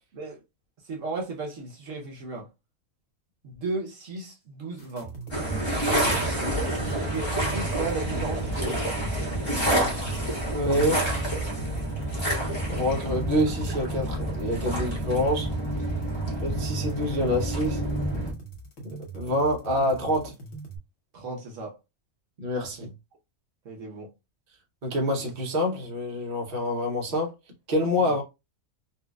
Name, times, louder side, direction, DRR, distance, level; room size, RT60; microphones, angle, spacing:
voice 1, 0.8-2.5 3.4-5.1 7.0-8.9 21.1-21.7 22.8-22.9 23.6-24.1 28.0-28.1, right 3 dB, 65° right, 1.2 m, -34 dB
sound 1, 4.8-20.8, right 5 dB, 65° left, 1.3 m, -42 dB
sound 2, 5.3-18.3, right 1 dB, 20° left, 1.0 m, -28 dB
voice 2, 5.8-6.7 10.5-11.1 12.7-15.5 16.4-17.8 19.1-20.3 22.4-22.9 24.8-27.3 27.7-28.2, left 1 dB, 45° right, 1.1 m, -27 dB
4.1 x 2.4 x 2.3 m
omnidirectional pair, 1.5 m